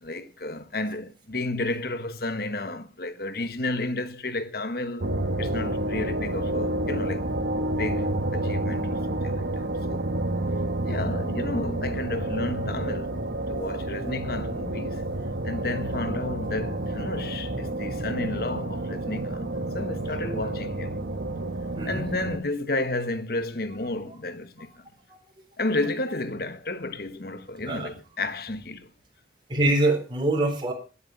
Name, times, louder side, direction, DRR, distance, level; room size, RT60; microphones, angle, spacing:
voice 1, 0.0-5.1 5.4-7.3 7.8-9.5 9.9-10.0 10.8-13.2 13.5-15.0 15.4-19.5 19.7-21.0 21.8-24.7 25.6-28.9, left 2 dB, 55° left, 1.4 m, -32 dB
sound 1, 5.0-22.4, right 1 dB, 85° right, 1.4 m, -29 dB
voice 2, 21.8-22.1 24.1-24.2 25.1-25.2 27.7-27.9 29.5-30.7, right 2 dB, 25° right, 4.1 m, -25 dB
13.5 x 10.0 x 5.8 m
head